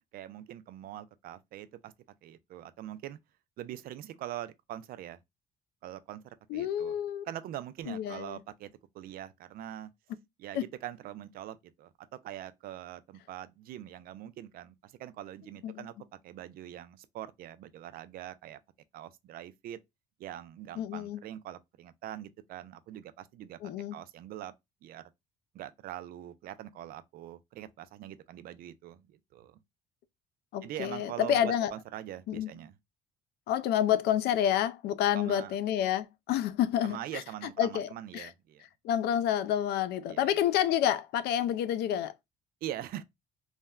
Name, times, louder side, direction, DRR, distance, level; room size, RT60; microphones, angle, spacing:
voice 1, 0.1-1.9 2.2-3.2 3.6-5.2 5.8-7.0 7.3-9.9 10.4-15.9 16.2-18.6 18.9-19.8 20.2-23.6 23.9-24.5 24.8-25.0 25.5-29.6 30.6-32.8 35.1-35.5 36.8-38.6 40.1-40.4 42.6-43.0, right 12 dB, 60° right, 0.4 m, -43 dB
voice 2, 6.5-7.3 7.9-8.4 10.5-10.6 15.6-15.9 20.8-21.2 23.6-23.9 30.5-31.7 32.3-32.5 33.5-37.2 37.6-38.3 38.8-42.1, left 10 dB, 75° left, 0.4 m, -29 dB
3.2 x 2.1 x 2.2 m
cardioid pair, 110°, 17 cm